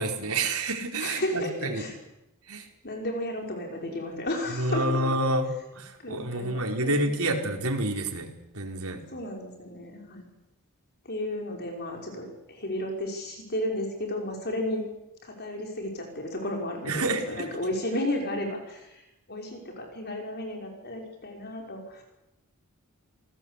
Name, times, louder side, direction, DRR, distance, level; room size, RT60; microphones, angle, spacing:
voice 1, 0.0-1.8 2.5-2.6 4.6-5.5 5.7-8.3 8.5-9.0 16.8-17.4, right 2 dB, 80° right, 3 dB, 4.6 m, -28 dB
voice 2, 1.0-2.0 2.8-5.0 6.0-7.1 8.9-10.2 11.0-14.8 15.2-22.0, left 1 dB, 50° left, 2 dB, 5.7 m, -33 dB
27.5 x 19.0 x 8.4 m, 0.91 s
head